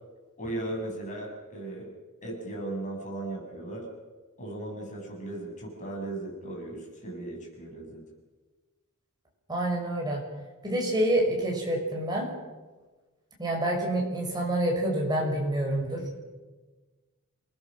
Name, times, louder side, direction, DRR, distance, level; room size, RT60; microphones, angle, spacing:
voice 1, 0.4-1.9 2.2-3.9 4.4-8.0, right 2 dB, 35° left, 0 dB, 6.7 m, -37 dB
voice 2, 9.5-10.2 10.6-12.3 13.4-16.0, right 1 dB, 20° right, -1 dB, 6.2 m, -27 dB
28.0 x 19.5 x 6.4 m, 1.3 s
head